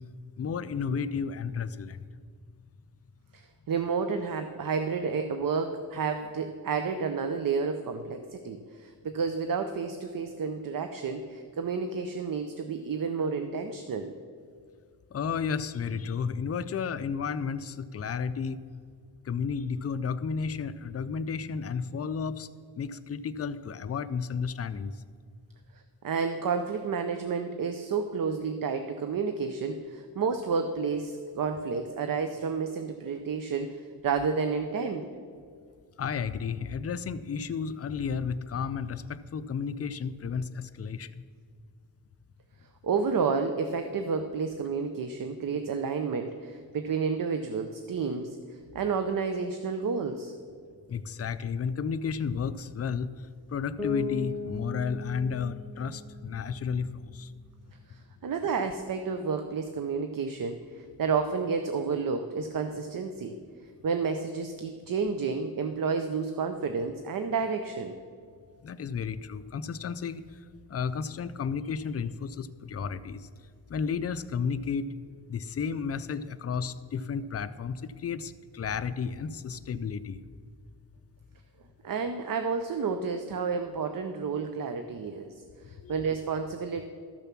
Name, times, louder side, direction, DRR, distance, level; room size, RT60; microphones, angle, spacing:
voice 1, 0.4-2.0 15.1-18.6 19.3-22.5 22.8-24.9 36.0-41.2 50.9-53.1 53.5-57.3 68.6-70.2 70.7-73.3 73.7-74.9 75.3-80.2 85.8-86.0, left 6 dB, 40° left, 12 dB, 0.4 m, -32 dB
voice 2, 3.3-14.1 26.0-35.0 42.8-48.4 48.7-50.3 57.9-63.4 63.8-67.9 81.8-85.3 85.6-86.8, right 5 dB, 55° right, 7 dB, 0.6 m, -30 dB
Bass guitar, 53.8-57.5, left 3 dB, 5° left, 0.9 m, -38 dB
13.0 x 6.9 x 5.9 m, 2.1 s
wide cardioid pair, 150°, 40 cm